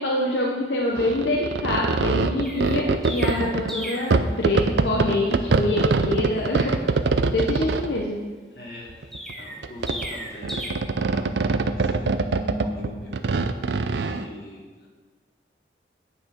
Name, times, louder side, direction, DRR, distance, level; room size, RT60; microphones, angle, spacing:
voice 1, 0.0-6.7 7.3-8.2, left 1 dB, 85° left, -2 dB, 1.0 m, -25 dB
sound 1, 1.0-3.7 4.1-8.0 8.9-9.3 9.6-10.1 10.4-14.2, right 4 dB, 80° right, 0.5 m, -23 dB
Chirp tweet, 2.4-4.2 9.1-10.7, equal, ahead, 0.9 m, -35 dB
voice 2, 8.5-10.7 11.1-13.2 13.9-14.9, left 1 dB, 60° left, -3 dB, 2.2 m, -39 dB
9.2 x 6.5 x 4.8 m, 1.4 s
head